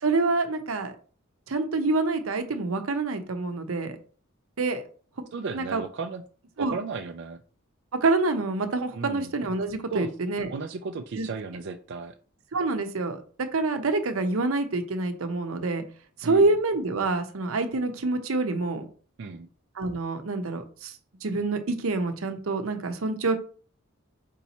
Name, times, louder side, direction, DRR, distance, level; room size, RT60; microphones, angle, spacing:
voice 1, 0.0-0.9 1.5-4.0 4.6-4.8 5.5-5.8 6.6-6.7 7.9-10.5 11.2-11.3 12.5-13.2 13.5-15.8 16.2-18.9 19.8-20.9 21.2-23.4, right 3 dB, 85° right, 7 dB, 0.7 m, -26 dB
voice 2, 5.3-6.2 6.6-7.4 8.9-9.3 9.9-10.1 10.5-12.1 16.2-16.5 19.2-19.5, right 4 dB, 60° right, 5 dB, 0.4 m, -34 dB
4.5 x 2.9 x 4.1 m, 0.41 s
head